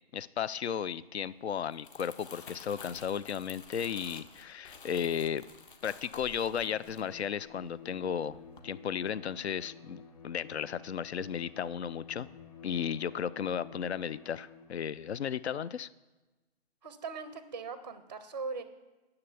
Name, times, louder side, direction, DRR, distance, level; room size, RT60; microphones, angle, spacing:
voice 1, 0.1-5.4 5.8-8.4 8.6-12.3 12.6-15.9, left 8 dB, 85° left, 18 dB, 0.5 m, -34 dB
Crumpling crinkling, 1.6-8.0 8.3-8.6, left 5 dB, 55° left, 1.3 m, -51 dB
Bowed string instrument, 6.5-15.0, left 7 dB, 35° left, 1.4 m, -52 dB
voice 2, 16.8-18.6, right 4 dB, 25° right, 11 dB, 0.4 m, -40 dB
9.7 x 7.0 x 8.2 m, 1.2 s
hypercardioid pair, 155°, 32 cm